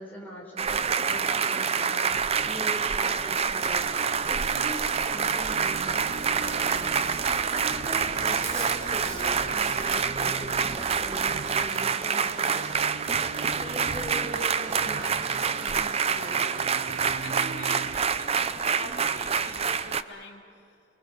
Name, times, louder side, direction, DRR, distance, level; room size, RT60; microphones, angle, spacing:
voice 1, 0.0-3.9 4.2-6.9 7.5-16.7, equal, 10° left, -2 dB, 5.4 m, -41 dB
sound 1, 0.6-20.0, right 6 dB, 35° right, 0.6 m, -27 dB
sound 2, 3.6-18.0, right 4 dB, 90° right, 0.7 m, -42 dB
Chewing mastication, 5.6-11.4, right 1 dB, 15° right, 4.3 m, -42 dB
voice 2, 17.2-20.8, left 2 dB, 65° left, 0 dB, 2.8 m, -45 dB
28.5 x 22.0 x 6.5 m, 2.4 s
head